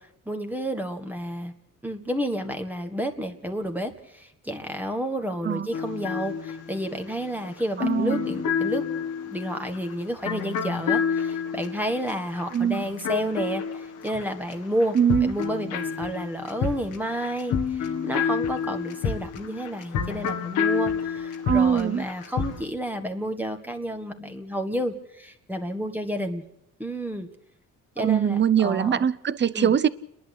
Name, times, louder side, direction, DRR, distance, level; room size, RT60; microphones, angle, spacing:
voice 1, 0.3-1.5 1.8-8.8 9.3-26.4 26.8-27.3 28.0-29.0 29.5-29.7, equal, 5° right, 1.8 m, -30 dB
sound 1, 5.7-14.5 14.8-22.6, left 6 dB, 85° left, 1.9 m, -29 dB
voice 2, 7.8-8.2 12.5-12.8 14.9-15.3 21.5-22.0 28.0-29.9, right 8 dB, 35° right, 0.8 m, -22 dB
29.5 x 11.0 x 8.3 m
cardioid pair, 90°, 30 cm